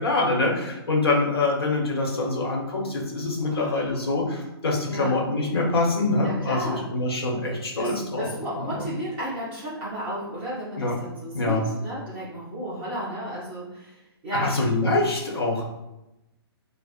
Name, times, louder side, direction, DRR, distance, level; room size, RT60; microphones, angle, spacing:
voice 1, 0.0-8.3 8.5-8.9 10.8-10.9 11.3-11.7 14.3-15.6, left 2 dB, 70° left, 0 dB, 1.0 m, -25 dB
voice 2, 3.4-4.0 4.9-5.2 6.2-6.9 7.8-14.6, right 1 dB, 10° right, -10 dB, 0.6 m, -33 dB
5.0 x 2.0 x 2.4 m, 0.93 s
hypercardioid pair, 180°, 13 cm